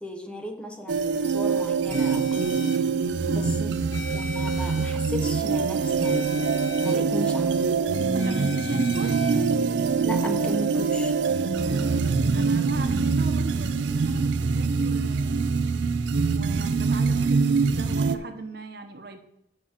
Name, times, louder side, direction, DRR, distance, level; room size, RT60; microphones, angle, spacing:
voice 1, 0.0-2.7 3.3-3.7 4.1-6.3 6.8-7.5 10.0-11.1, left 1 dB, 5° left, 4 dB, 0.6 m, -35 dB
sound 1, 0.9-18.2, right 4 dB, 90° right, 0.5 m, -24 dB
sound 2, 1.9-2.8 3.9-4.9 6.0-7.0 8.2-9.4, left 4 dB, 90° left, 1.1 m, -39 dB
voice 2, 3.2-3.6 8.0-9.1 11.7-15.5 16.3-19.2, right 2 dB, 60° right, 6 dB, 1.0 m, -37 dB
6.6 x 5.8 x 5.7 m, 0.82 s
head